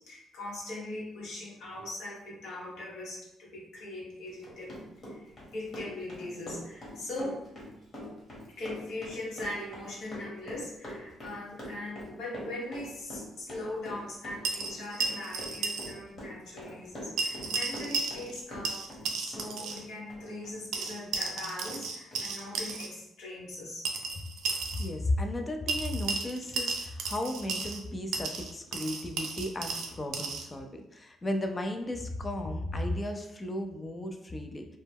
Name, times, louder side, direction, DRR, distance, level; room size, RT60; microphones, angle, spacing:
voice 1, 0.0-4.8 5.1-7.5 8.6-18.8 19.2-23.8, left 1 dB, 80° left, -5 dB, 0.9 m, -40 dB
Run, 4.3-19.1 19.3-20.9 21.2-21.4 21.6-21.8 22.1-22.2, equal, 45° left, 1.1 m, -43 dB
sound 1, 14.4-15.9 16.2-16.3 17.2-18.4 18.7-19.8 20.7-22.9 23.9-24.9 25.7-27.8 28.1-30.5, right 4 dB, 85° right, 0.3 m, -34 dB
voice 2, 24.7-34.8, left 1 dB, 25° left, 5 dB, 0.4 m, -34 dB
2.1 x 2.0 x 3.4 m, 0.84 s
cardioid pair, 90°, 0 cm